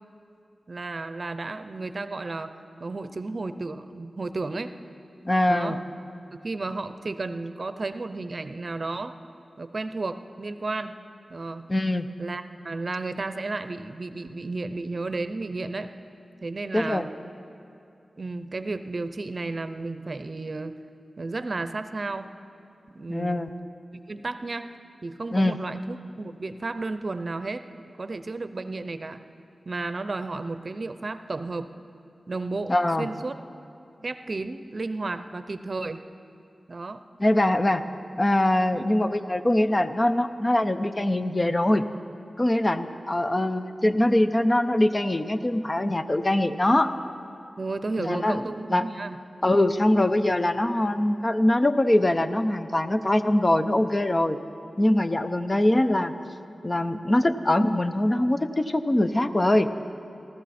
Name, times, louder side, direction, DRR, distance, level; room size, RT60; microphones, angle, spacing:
voice 1, 0.7-4.7 5.5-5.8 6.3-9.2 9.6-11.0 11.3-11.7 12.2-15.9 16.4-17.1 18.2-20.8 21.2-22.3 22.9-23.5 24.1-24.7 25.0-27.6 28.0-29.2 29.7-31.7 32.3-33.4 34.0-36.0 36.7-37.0 38.7-38.8 47.6-49.2, right 3 dB, 55° right, 11 dB, 0.6 m, -33 dB
voice 2, 5.2-5.8 11.7-12.1 16.7-17.1 23.1-23.5 25.3-25.6 32.7-33.1 37.2-37.8 38.2-41.8 42.4-46.9 48.0-48.4 48.7-48.9 49.4-54.4 54.8-56.1 56.6-59.7, left 1 dB, 35° left, 9 dB, 0.7 m, -23 dB
19.5 x 15.0 x 4.3 m, 2.7 s
cardioid pair, 40°, 0 cm